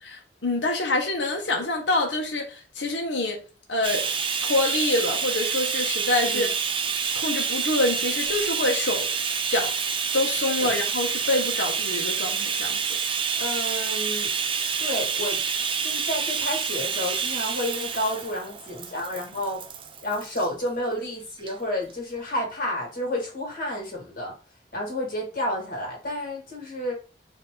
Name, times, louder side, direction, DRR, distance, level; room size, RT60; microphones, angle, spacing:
voice 1, 0.0-3.4 3.7-4.1 4.4-6.5 7.1-9.1 9.5-9.7 10.1-12.8, left 2 dB, 90° left, 1.1 m, -26 dB
Bathtub (filling or washing), 3.8-20.5 21.4-21.5 21.9-22.0, right 6 dB, 30° right, 0.5 m, -28 dB
voice 2, 13.4-14.3 14.8-15.4 15.8-19.6 20.0-24.3 24.7-26.9, left 1 dB, 55° left, 2.2 m, -30 dB
4.4 x 2.8 x 3.8 m
head